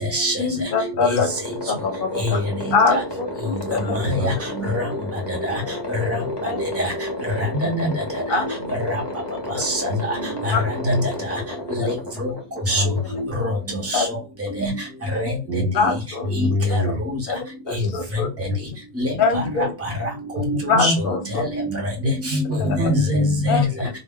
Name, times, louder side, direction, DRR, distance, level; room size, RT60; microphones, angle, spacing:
voice 1, 0.4-1.3 1.7-2.4 2.7-4.0 6.4-6.6 8.3-8.4 10.5-10.6 13.9-14.1 15.7-16.3 16.7-16.8 17.3-18.3 19.2-19.7 20.7-21.4 22.6-22.8 23.5-23.7, left 4 dB, 60° left, 5 dB, 0.8 m, -23 dB
sound 1, 1.3-13.9, left 1 dB, 30° left, 0.5 m, -32 dB
voice 2, 5.3-5.6 6.1-6.2 6.8-6.9 7.3-7.4 7.8-7.9 9.6-9.8 11.7-12.3 12.7-12.8 13.4-13.5 13.9-14.2 14.5-14.7 15.1-15.3 16.4-16.5 19.0-19.7 20.0-20.1 20.4-20.9 21.3-21.8 22.8-23.0 23.5-23.6, equal, 15° right, 0 dB, 0.7 m, -24 dB
voice 3, 7.5-8.0 9.9-10.0 10.4-10.5 10.8-11.1 12.7-13.0 15.5-15.7 16.2-17.0 18.5-18.6 20.5-21.0 22.0-23.9, left 1 dB, 65° right, 3 dB, 1.1 m, -23 dB
2.2 x 2.1 x 3.6 m, 0.31 s
omnidirectional pair, 1.2 m